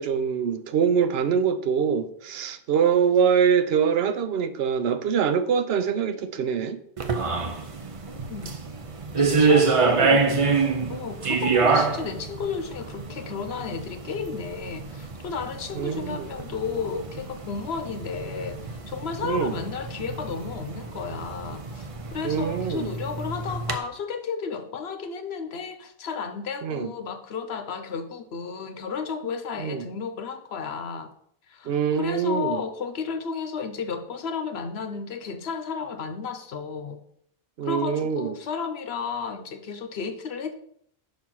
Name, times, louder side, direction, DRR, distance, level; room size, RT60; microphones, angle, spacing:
voice 1, 0.0-6.8 15.7-16.3 19.2-19.6 22.2-22.9 26.6-26.9 29.6-29.9 31.7-32.6 37.6-38.4, right 7 dB, 75° right, 0.9 m, -24 dB
sound 1, 7.0-23.8, right 4 dB, 40° right, 0.6 m, -27 dB
voice 2, 8.1-8.6 9.3-10.3 10.9-31.1 31.5-37.0 37.6-40.6, left 5 dB, 85° left, 1.0 m, -33 dB
5.3 x 4.3 x 6.1 m
omnidirectional pair, 1.0 m